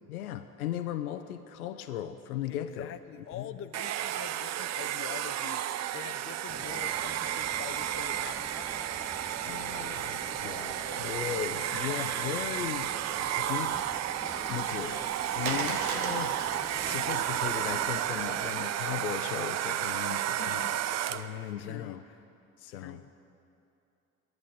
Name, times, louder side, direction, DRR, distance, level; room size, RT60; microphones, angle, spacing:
voice 1, 0.0-2.9 3.4-3.5 9.5-13.8 14.5-15.1 15.4-20.7 21.1-22.0 22.6-23.0, left 10 dB, 85° left, 9 dB, 0.5 m, -37 dB
voice 2, 2.5-8.4 15.4-15.7 19.9-22.2 22.7-23.1, left 10 dB, 30° left, 10 dB, 0.5 m, -46 dB
Domestic sounds home sounds, 3.7-21.4, right 11 dB, 40° right, 0.5 m, -32 dB
sound 1, 6.5-18.5, left 1 dB, 5° left, 0.9 m, -46 dB
Water, 13.2-18.6, right 4 dB, 85° right, 1.1 m, -41 dB
10.5 x 9.5 x 8.8 m, 2.7 s
hypercardioid pair, 55°, 42 cm